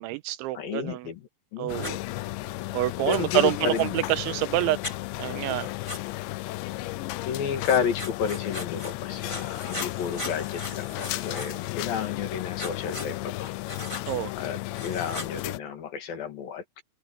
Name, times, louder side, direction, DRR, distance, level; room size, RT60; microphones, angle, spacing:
voice 1, 0.0-1.1 1.6-2.0 2.7-4.8 5.2-5.7 14.1-14.3, right 16 dB, 85° right, 3.1 m, -27 dB
voice 2, 0.5-1.9 3.1-4.0 7.3-13.5 14.4-16.8, left 7 dB, 55° left, 3.3 m, -31 dB
sound 1, 1.7-15.6, left 19 dB, 80° left, 2.9 m, -34 dB
Writing, 1.8-1.9 3.1-4.0 4.8-5.0 5.8-6.0 7.6-8.9 9.2-11.7 12.6-13.1 13.7-14.0 14.7-15.3, left 1 dB, 10° left, 1.3 m, -38 dB
omnidirectional pair, 5.4 m